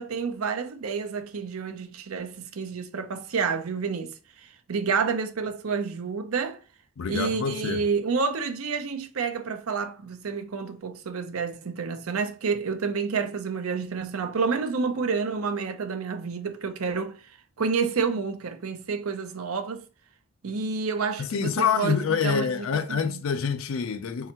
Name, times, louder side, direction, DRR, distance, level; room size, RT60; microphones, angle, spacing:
voice 1, 0.0-4.1 4.7-6.6 7.1-17.2 17.6-19.8 20.4-23.2, right 5 dB, 90° right, 0.6 m, -29 dB
voice 2, 7.0-7.9 21.2-24.3, left 6 dB, 70° left, 0.4 m, -26 dB
4.3 x 3.8 x 2.9 m
head